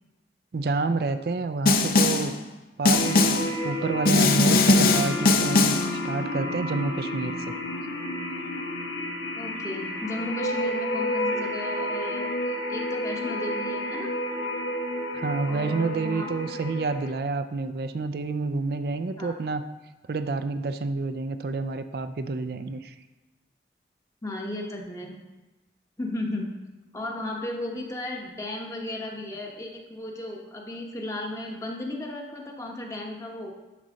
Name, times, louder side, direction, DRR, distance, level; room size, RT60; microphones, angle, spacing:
voice 1, 0.5-2.3 2.8-5.7 6.0-7.5 15.1-19.6 20.1-22.9, right 3 dB, 60° right, 10 dB, 0.4 m, -29 dB
Snare drum, 1.7-2.3 2.9-3.5 4.1-5.9, left 3 dB, 55° left, 0.6 m, -20 dB
sound 1, 2.9-17.1, left 1 dB, 80° left, 1.0 m, -31 dB
voice 2, 9.3-14.1 15.5-16.6 19.2-19.4 24.2-25.2 26.0-26.5 26.9-33.5, left 1 dB, 20° left, 0 dB, 1.1 m, -35 dB
10.5 x 4.1 x 6.3 m, 1.1 s
head